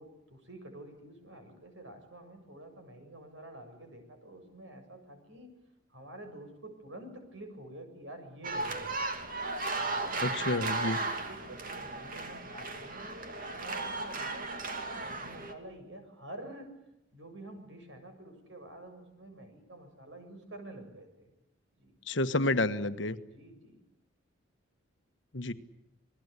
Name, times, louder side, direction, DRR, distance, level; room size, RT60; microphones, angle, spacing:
voice 1, 0.0-5.5 5.9-9.0 10.0-16.7 17.1-21.3 21.8-22.0 23.2-23.8, right 1 dB, 70° right, 6 dB, 7.3 m, -48 dB
sound 1, 8.4-15.5, right 3 dB, 45° right, 2.9 m, -35 dB
voice 2, 10.2-11.0 22.1-23.2 25.3-25.5, left 2 dB, 70° left, 10 dB, 1.4 m, -29 dB
28.0 x 20.0 x 8.3 m, 0.85 s
head